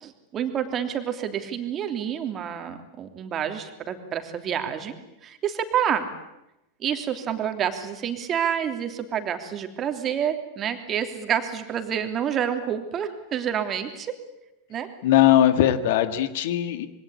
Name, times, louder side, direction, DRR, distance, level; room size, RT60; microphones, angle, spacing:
voice 1, 0.0-4.9 5.2-6.1 6.8-14.1 14.7-14.9, right 9 dB, 30° right, 6 dB, 3.1 m, -28 dB
voice 2, 15.0-16.9, left 12 dB, 50° left, 11 dB, 1.8 m, -20 dB
26.5 x 23.5 x 8.6 m, 0.93 s
figure-of-eight pair, 90°, 0 cm